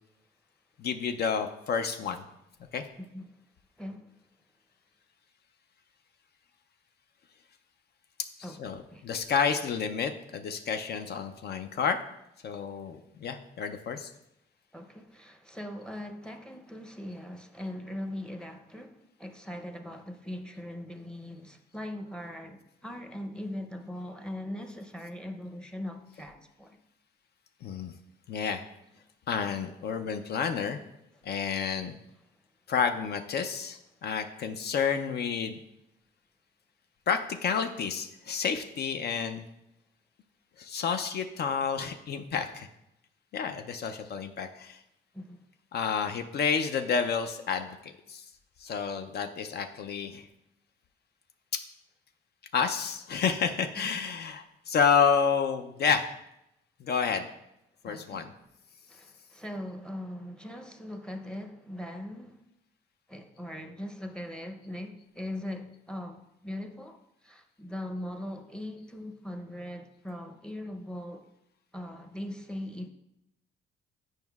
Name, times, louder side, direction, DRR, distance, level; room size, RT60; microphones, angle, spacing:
voice 1, 0.8-2.2 2.7-2.8 8.4-12.0 12.4-14.1 27.6-27.9 28.3-28.6 29.3-30.8 31.2-32.0 32.7-35.6 37.1-39.4 40.6-42.7 43.3-44.8 45.7-48.2 48.6-50.3 52.5-56.1 56.8-57.3 57.8-58.3, left 6 dB, 55° left, 7 dB, 0.4 m, -30 dB
voice 2, 3.8-4.1 8.4-8.6 8.9-9.0 14.7-26.8 45.1-45.4 57.1-57.2 57.8-58.2 58.9-62.4 63.1-67.0 67.2-71.2 71.7-72.9, left 1 dB, 5° left, 5 dB, 0.6 m, -40 dB
9.0 x 5.2 x 2.3 m, 0.83 s
cardioid pair, 90°, 20 cm